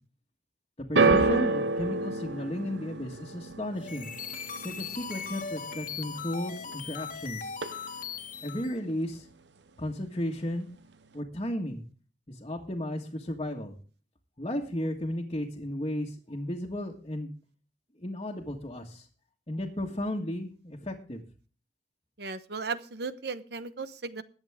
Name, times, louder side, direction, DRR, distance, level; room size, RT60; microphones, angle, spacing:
voice 1, 0.8-4.1 4.6-7.5 8.4-9.3 9.8-10.7 11.1-11.8 12.3-13.7 14.4-17.3 18.0-19.1 19.5-21.2, left 1 dB, 30° left, -3 dB, 1.6 m, -34 dB
sound 1, 1.0-7.2 7.5-8.2 8.9-9.0, right 3 dB, 90° right, 0.8 m, -30 dB
sound 2, 3.7-8.8, left 6 dB, 50° left, 1.5 m, -39 dB
voice 2, 22.2-24.2, right 4 dB, 65° right, 13 dB, 1.0 m, -36 dB
21.5 x 8.2 x 3.6 m, 0.39 s
head